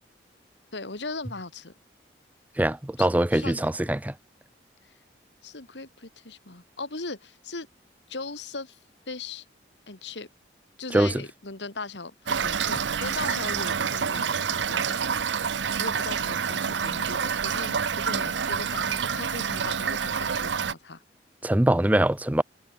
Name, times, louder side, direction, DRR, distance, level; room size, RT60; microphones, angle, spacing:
voice 1, 0.7-1.7 3.0-3.6 5.4-7.7 8.1-8.8 9.1-9.5 9.9-10.3 10.8-15.0 15.5-21.0, left 3 dB, 75° left, 2.6 m, -38 dB
voice 2, 2.6-4.1 10.9-11.1 21.4-22.4, right 1 dB, 10° right, 0.4 m, -23 dB
Toilet flush / Fill (with liquid), 12.3-20.7, right 6 dB, 80° right, 0.8 m, -28 dB
head